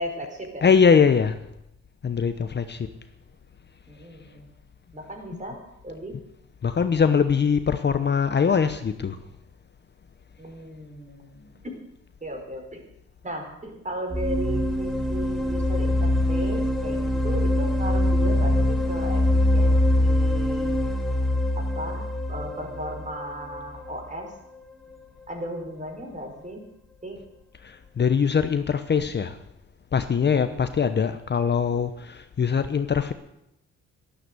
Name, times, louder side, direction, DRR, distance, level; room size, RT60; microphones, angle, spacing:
voice 1, 0.0-0.6 3.9-4.5 4.9-6.1 10.4-11.7 12.2-12.9 13.2-20.8 21.5-24.3 25.3-26.6 27.0-27.2 30.3-30.6, right 1 dB, 25° right, 3 dB, 5.0 m, -36 dB
voice 2, 0.6-1.3 2.0-2.9 5.3-5.4 6.6-9.2 27.6-29.4 29.9-33.1, left 6 dB, 35° left, 9 dB, 0.9 m, -22 dB
sound 1, 14.1-23.9, left 1 dB, ahead, 2.5 m, -23 dB
12.5 x 12.0 x 8.2 m, 0.82 s
cardioid pair, 90°, 30 cm